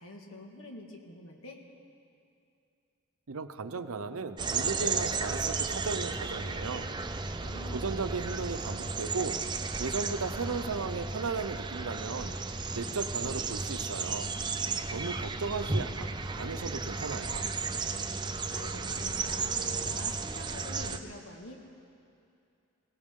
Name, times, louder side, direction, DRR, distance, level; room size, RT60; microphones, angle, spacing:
voice 1, 0.0-1.7 7.2-8.0 17.7-21.5, left 1 dB, 70° left, 2 dB, 1.8 m, -47 dB
voice 2, 3.3-6.9 7.7-9.4 9.8-12.4 12.7-14.3 14.9-16.1 16.4-17.5, right 4 dB, 85° right, 10 dB, 0.7 m, -36 dB
sound 1, 4.4-21.0, right 4 dB, 20° right, 0.5 m, -34 dB
21.5 x 17.5 x 3.7 m, 2.6 s
head